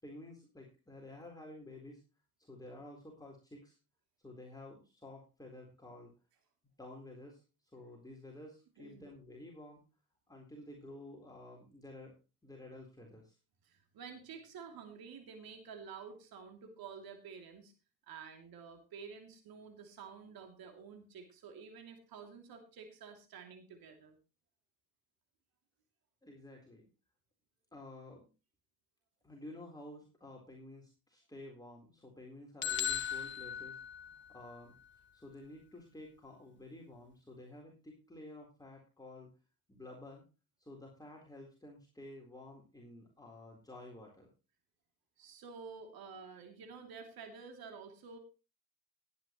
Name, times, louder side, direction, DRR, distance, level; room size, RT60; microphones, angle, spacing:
voice 1, 0.0-2.0 2.4-3.8 4.2-6.1 6.8-7.4 7.7-9.8 10.3-12.1 12.4-13.4 26.2-26.9 27.7-28.3 29.2-33.8 34.3-34.7 35.1-39.3 39.7-40.2 40.6-44.3, left 1 dB, 10° left, -1 dB, 4.0 m, -51 dB
voice 2, 13.6-17.7 18.1-24.2 45.2-48.2, right 6 dB, 55° right, 5 dB, 3.0 m, -50 dB
sound 1, 32.6-34.6, left 9 dB, 25° left, 0.5 m, -37 dB
18.5 x 9.9 x 3.1 m, 0.31 s
hypercardioid pair, 60°, 43 cm